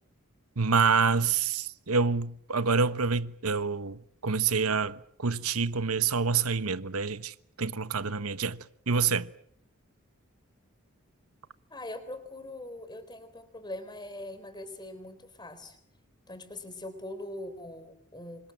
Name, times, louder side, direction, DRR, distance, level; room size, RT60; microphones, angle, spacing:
voice 1, 0.6-8.6 8.9-9.3, right 5 dB, 90° right, 1.2 m, -27 dB
voice 2, 11.7-15.8 16.3-18.5, left 1 dB, 20° left, 4.1 m, -42 dB
28.0 x 25.5 x 7.6 m
head